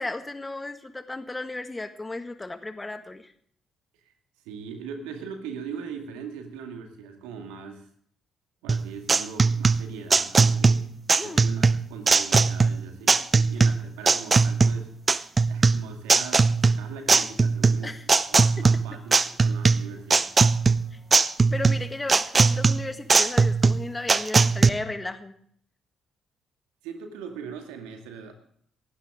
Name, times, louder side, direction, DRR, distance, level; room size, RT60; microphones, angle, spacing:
voice 1, 0.0-3.3 11.2-11.4 13.3-13.4 17.8-18.1 18.6-18.7 20.9-21.0 21.5-25.3, left 2 dB, 20° left, 9 dB, 1.8 m, -34 dB
voice 2, 4.5-7.9 8.6-10.8 11.2-13.2 13.5-14.9 15.5-17.9 18.3-20.5 26.8-28.3, right 6 dB, 75° right, 5 dB, 2.1 m, -40 dB
sound 1, 8.7-24.7, right 4 dB, 35° right, 0.7 m, -20 dB
18.0 x 15.0 x 3.7 m, 0.62 s
hypercardioid pair, 45°, 0 cm